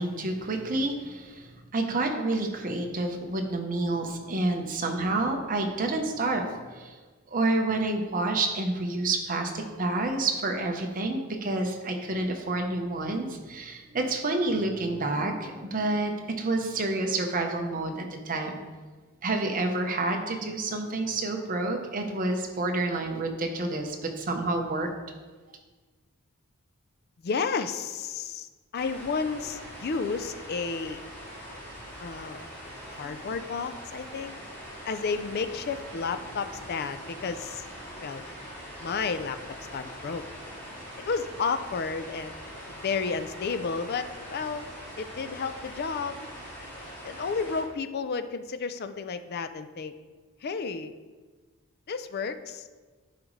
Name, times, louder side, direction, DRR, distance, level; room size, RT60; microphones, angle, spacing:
voice 1, 0.0-7.0 7.3-18.6 19.2-24.9, right 2 dB, 40° right, 3 dB, 0.8 m, -29 dB
voice 2, 27.2-31.0 32.0-32.5 32.9-34.3 34.8-37.6 38.0-38.2 38.8-39.4 39.7-40.2 41.0-42.4 42.7-46.3 47.0-49.9 50.4-50.9 51.9-52.7, left 5 dB, 45° left, 11 dB, 0.4 m, -32 dB
sound 1, 28.8-47.6, equal, 10° left, 2.4 m, -42 dB
11.5 x 5.0 x 3.2 m, 1.4 s
head